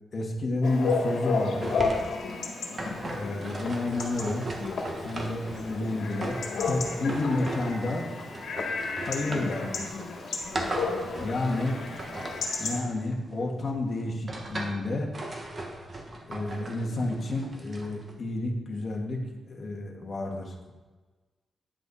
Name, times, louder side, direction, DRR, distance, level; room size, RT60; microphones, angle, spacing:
voice 1, 0.1-1.8 3.1-4.5 5.0-8.0 9.0-9.9 11.2-11.7 12.6-15.1 16.3-19.2 19.5-20.7, left 2 dB, 40° left, 0 dB, 1.7 m, -30 dB
Chatter / Bark / Livestock farm animals working animals, 0.6-12.8, left 4 dB, 75° left, 2.0 m, -33 dB
sound 1, 1.6-13.5 14.0-14.8 15.1-18.1, right 2 dB, 30° right, 1.4 m, -38 dB
10.5 x 8.2 x 4.1 m, 1.3 s
wide cardioid pair, 135°, 0 cm